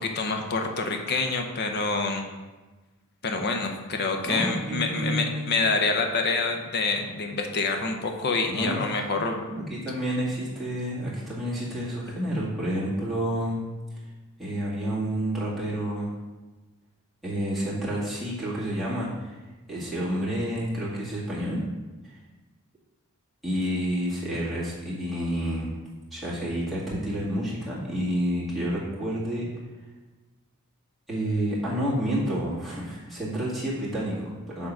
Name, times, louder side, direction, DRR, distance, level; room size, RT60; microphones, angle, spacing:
voice 1, 0.0-2.3 3.2-9.7, left 3 dB, 50° left, 4 dB, 0.8 m, -27 dB
voice 2, 4.2-5.6 8.4-8.8 9.5-13.6 14.4-16.2 17.2-19.4 19.7-21.6 22.0-22.2 23.4-25.7 26.1-29.4 31.1-34.7, equal, ahead, -7 dB, 2.1 m, -29 dB
6.2 x 3.9 x 6.1 m, 1.2 s
head